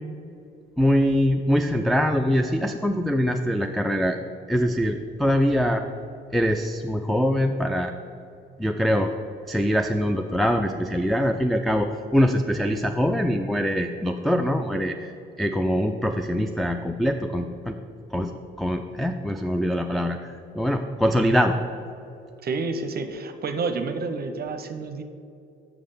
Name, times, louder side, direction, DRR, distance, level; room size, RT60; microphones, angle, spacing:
voice 1, 0.8-4.2 4.5-5.8 6.3-7.9 8.6-9.1 9.5-15.1 15.4-17.8 18.1-18.3 18.6-21.5, equal, ahead, 6 dB, 0.3 m, -23 dB
voice 2, 22.4-25.0, right 4 dB, 50° right, 8 dB, 0.6 m, -29 dB
5.9 x 5.6 x 6.6 m, 2.5 s
cardioid pair, 90°, 20 cm